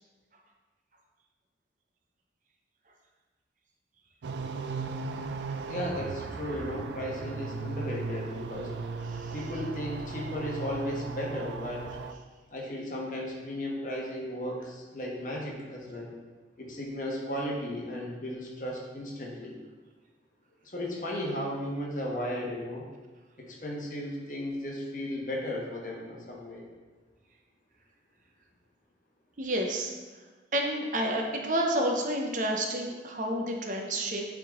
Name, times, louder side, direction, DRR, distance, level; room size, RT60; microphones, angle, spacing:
sound 1, 4.2-12.1, right 4 dB, 85° right, 0.4 m, -37 dB
voice 1, 5.7-8.7 9.3-11.9 12.5-16.1 16.6-19.5 20.6-22.8 23.4-26.7, left 1 dB, 45° left, -2 dB, 1.2 m, -35 dB
voice 2, 29.4-29.9 30.5-34.2, right 1 dB, 45° right, 2 dB, 0.7 m, -29 dB
8.4 x 3.7 x 3.7 m, 1.3 s
head